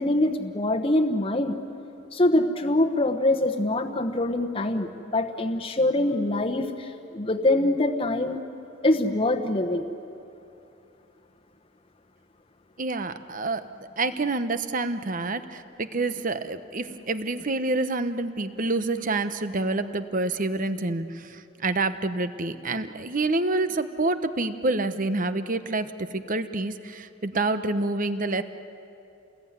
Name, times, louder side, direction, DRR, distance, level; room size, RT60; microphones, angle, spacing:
voice 1, 0.0-1.6 2.1-8.4 8.8-9.9, left 1 dB, 30° left, 3 dB, 1.1 m, -24 dB
voice 2, 12.8-13.6 14.0-28.4, right 2 dB, 40° right, 11 dB, 1.0 m, -27 dB
28.5 x 20.5 x 9.5 m, 2.8 s
head